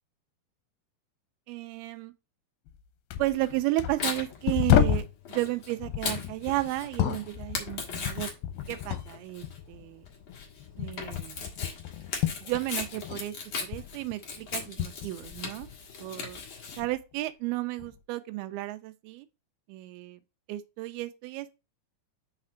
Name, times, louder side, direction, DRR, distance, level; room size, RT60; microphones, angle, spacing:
voice 1, 1.5-2.1 3.2-8.3 8.7-10.1 10.8-11.5 12.4-13.3 13.6-15.7 16.0-16.4 16.8-19.3 19.7-20.2 20.5-21.5, right 18 dB, 85° right, 2.5 m, -33 dB
sound 1, 2.7-2.8 3.1-5.2 5.8-9.2 9.4-13.3 13.5-15.9 16.3-17.0 17.8-18.0, left 11 dB, 80° left, 2.5 m, -31 dB
Tearing, 3.3-16.8, left 5 dB, 55° left, 1.6 m, -39 dB
5.7 x 4.4 x 4.9 m
omnidirectional pair, 4.4 m